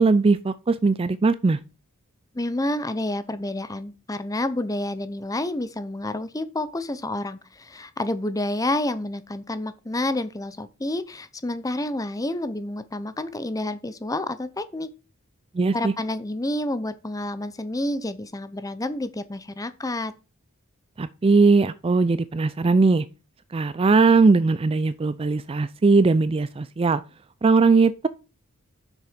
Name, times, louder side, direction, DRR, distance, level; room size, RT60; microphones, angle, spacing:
voice 1, 0.0-1.6 15.5-15.9 21.0-23.0 23.5-27.0 27.4-28.1, right 4 dB, 25° right, 0.3 m, -19 dB
voice 2, 2.3-14.9 15.7-20.1, left 1 dB, 15° left, 0.7 m, -29 dB
7.3 x 6.6 x 5.1 m
head